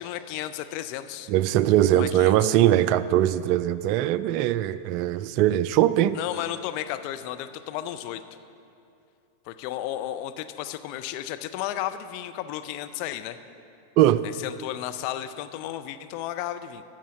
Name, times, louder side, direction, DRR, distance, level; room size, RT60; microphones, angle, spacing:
voice 1, 0.0-1.3 1.9-2.6 6.1-8.2 9.5-13.4 14.4-16.8, left 12 dB, 45° left, 9 dB, 0.5 m, -33 dB
voice 2, 1.3-6.2 14.0-14.2, right 12 dB, 45° right, 16 dB, 0.3 m, -21 dB
12.5 x 7.5 x 6.0 m, 2.6 s
figure-of-eight pair, 90°, 0 cm